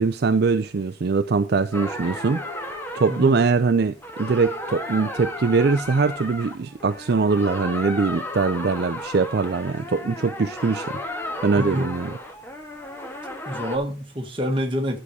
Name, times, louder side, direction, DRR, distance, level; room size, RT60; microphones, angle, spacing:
voice 1, 0.0-2.4 2.9-11.0 11.4-12.1, right 4 dB, 55° right, 0.4 m, -22 dB
sound 1, 1.7-13.8, left 1 dB, 10° left, 1.6 m, -34 dB
voice 2, 3.1-3.4 11.6-11.9 13.5-15.0, equal, 25° right, 1.7 m, -27 dB
11.0 x 6.7 x 4.8 m
head